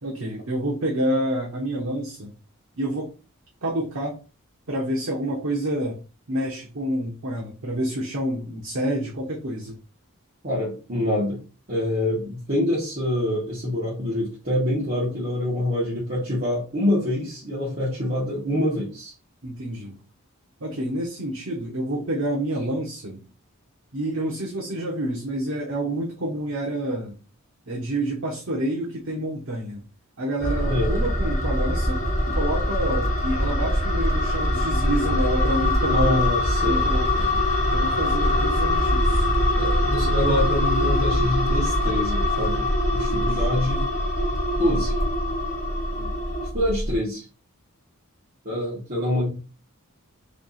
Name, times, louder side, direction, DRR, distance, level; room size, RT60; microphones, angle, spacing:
voice 1, 0.0-2.3 2.8-3.1 3.6-4.2 4.7-6.0 6.3-9.8 19.4-20.0 20.6-23.2 23.9-27.2 27.7-29.8 30.2-36.2 36.7-37.5 37.7-39.3 43.2-43.6 46.0-46.2 48.9-49.1, right 1 dB, 75° right, -2 dB, 1.0 m, -28 dB
voice 2, 10.4-11.4 11.7-19.1 30.7-30.9 35.9-36.9 39.6-43.9 44.6-45.0 46.5-47.2 48.4-49.3, left 1 dB, 45° right, -7 dB, 1.5 m, -26 dB
sound 1, 30.4-46.5, left 3 dB, 35° left, 1.2 m, -27 dB
sound 2, 30.4-46.9, equal, 15° right, 0.7 m, -25 dB
3.3 x 2.8 x 4.0 m, 0.34 s
head